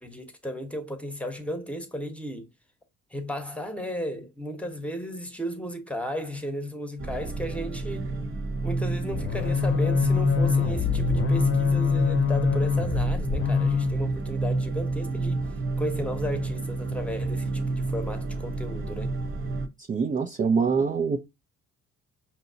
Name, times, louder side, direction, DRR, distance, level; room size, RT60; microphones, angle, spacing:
voice 1, 0.0-2.5 3.1-8.1 8.6-15.4 15.8-19.2, equal, 5° left, 0.9 m, -34 dB
sound 1, 7.0-19.7, right 3 dB, 45° right, 0.8 m, -30 dB
sound 2, 9.1-14.0, left 6 dB, 45° left, 0.7 m, -24 dB
voice 2, 19.9-21.2, right 5 dB, 30° right, 0.4 m, -24 dB
5.2 x 2.8 x 2.7 m
cardioid pair, 100°, 29 cm